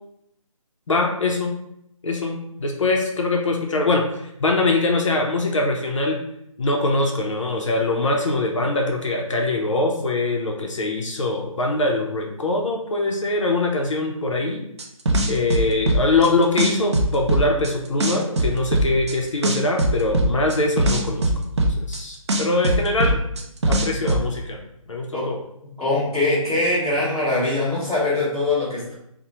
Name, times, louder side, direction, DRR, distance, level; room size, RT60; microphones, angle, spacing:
voice 1, 0.9-1.5 2.0-6.2 6.6-14.6 15.3-21.3 21.9-23.2 23.6-24.6 24.9-25.4, left 2 dB, 60° left, 1 dB, 0.5 m, -23 dB
sound 1, 14.8-16.3 16.6-17.7 18.0-19.1 19.4-22.0 22.3-24.2, right 1 dB, 50° right, 0.4 m, -20 dB
voice 2, 25.8-28.9, left 2 dB, 5° right, -16 dB, 0.7 m, -22 dB
2.9 x 2.1 x 2.7 m, 0.76 s
hypercardioid pair, 170°, 18 cm